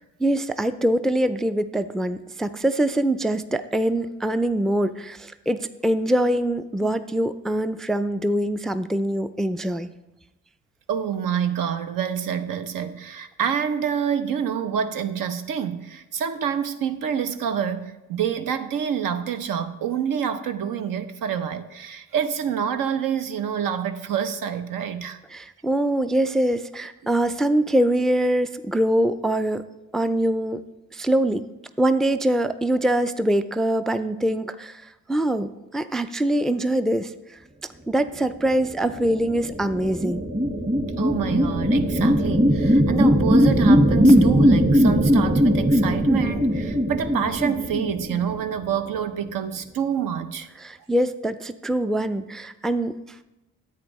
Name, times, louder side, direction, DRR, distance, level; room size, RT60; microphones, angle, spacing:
voice 1, 0.2-9.9 25.3-29.6 29.9-30.6 30.9-31.4 31.8-37.1 37.9-40.2 50.6-53.0, right 1 dB, ahead, 0.3 m, -23 dB
voice 2, 10.9-25.2 41.0-50.5, right 8 dB, 75° right, 0.7 m, -27 dB
sound 1, 38.9-48.6, equal, 25° right, 1.6 m, -19 dB
10.5 x 8.2 x 3.1 m
supercardioid pair, 55°, 33 cm